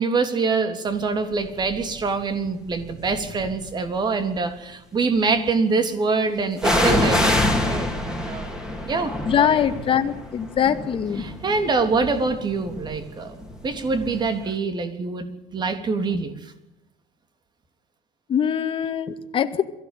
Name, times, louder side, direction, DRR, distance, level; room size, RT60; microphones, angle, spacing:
voice 1, 0.0-8.5 8.9-9.1 11.2-13.3 13.6-15.3 15.5-16.3, right 4 dB, 30° right, 8 dB, 3.4 m, -25 dB
sound 1, 1.6-2.0 2.7-3.7 6.6-14.2 14.5-14.6, left 1 dB, 5° right, 4.4 m, -26 dB
voice 2, 9.2-11.2 18.3-19.6, left 8 dB, 35° left, 8 dB, 2.2 m, -22 dB
23.5 x 16.0 x 9.4 m, 0.93 s
cardioid pair, 125°, 15 cm